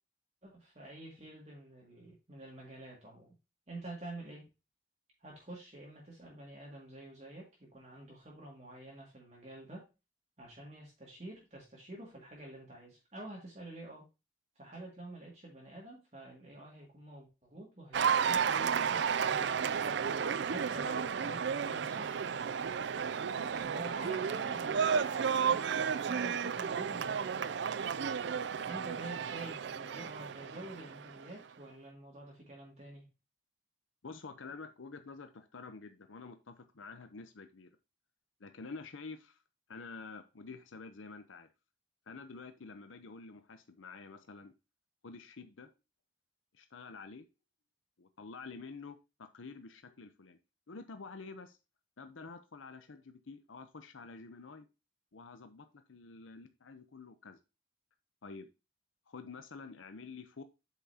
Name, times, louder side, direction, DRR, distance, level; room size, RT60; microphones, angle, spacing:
voice 1, 0.4-3.3 3.7-4.4 5.2-9.8 10.4-14.0 14.6-19.6 20.4-22.2 23.4-27.6 28.6-33.1, right 1 dB, 35° right, -3 dB, 2.2 m, -48 dB
Cheering / Applause, 17.9-31.3, right 7 dB, 65° right, 0.4 m, -33 dB
voice 2, 34.0-37.7 38.4-39.4 39.7-41.5 42.1-44.5 45.0-45.7 46.5-47.3 48.0-50.4 50.7-51.6 52.0-54.7 55.1-57.4 58.2-58.5 59.1-60.4, left 4 dB, 85° left, 9 dB, 0.7 m, -48 dB
8.2 x 5.8 x 2.8 m, 0.27 s
head